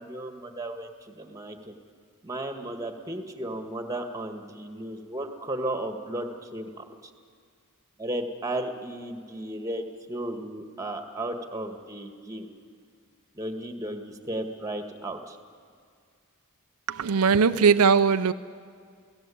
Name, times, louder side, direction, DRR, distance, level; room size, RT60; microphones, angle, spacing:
voice 1, 0.0-1.7 2.2-6.7 8.0-9.8 10.1-12.5 13.4-15.4, right 1 dB, 15° right, 1.8 m, -34 dB
voice 2, 16.9-18.3, right 5 dB, 80° right, 0.6 m, -20 dB
29.0 x 17.0 x 8.6 m
head